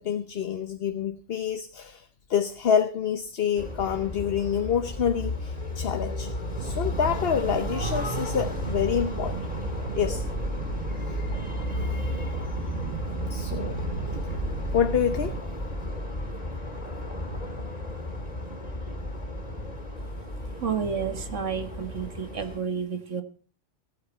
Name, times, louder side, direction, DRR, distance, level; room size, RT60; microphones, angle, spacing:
voice 1, 0.0-6.3 6.6-9.4 9.9-10.2 13.3-13.8 14.7-15.4, left 8 dB, 55° left, 8 dB, 1.1 m, -27 dB
sound 1, 3.5-22.6, left 1 dB, 30° left, 3.1 m, -33 dB
sound 2, 6.5-15.4, right 6 dB, 65° right, 1.2 m, -35 dB
voice 2, 20.4-23.2, right 6 dB, 85° right, 9 dB, 1.9 m, -31 dB
16.0 x 12.5 x 4.4 m, 0.39 s
omnidirectional pair, 1.2 m